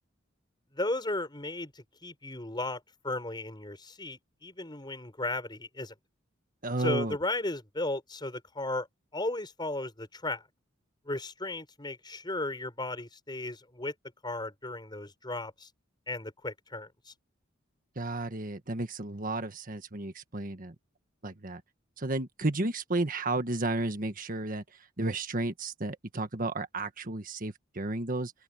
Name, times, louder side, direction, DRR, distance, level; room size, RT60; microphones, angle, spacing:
voice 1, 0.7-5.9 6.8-8.9 9.1-10.4 11.1-13.9 14.2-15.7 16.1-17.1, left 2 dB, 25° left, 6.0 m, -35 dB
voice 2, 6.6-7.2 17.9-20.7 21.2-21.6 22.0-24.6 25.0-28.3, right 2 dB, 45° right, 1.6 m, -32 dB
open air
head